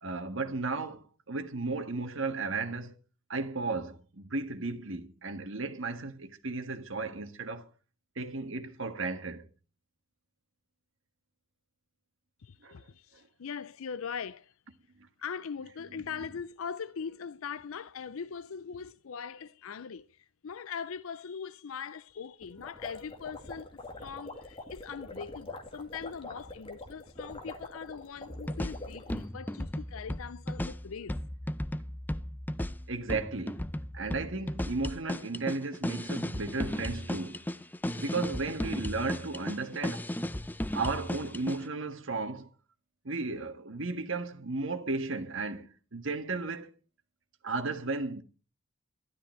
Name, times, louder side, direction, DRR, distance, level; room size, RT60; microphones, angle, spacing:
voice 1, 0.0-2.9 3.3-7.7 8.1-9.5 12.6-12.8 15.9-16.1 32.9-33.7 33.9-37.5 38.0-40.0 40.7-42.5 43.0-46.7 47.4-48.2, right 3 dB, 60° right, 1.6 m, -34 dB
voice 2, 12.4-14.5 15.2-31.2, left 6 dB, 75° left, 0.5 m, -41 dB
sound 1, 22.4-29.3, left 2 dB, 25° left, 2.3 m, -44 dB
sound 2, 28.3-41.6, left 1 dB, 10° left, 0.5 m, -35 dB
12.5 x 12.0 x 4.4 m
head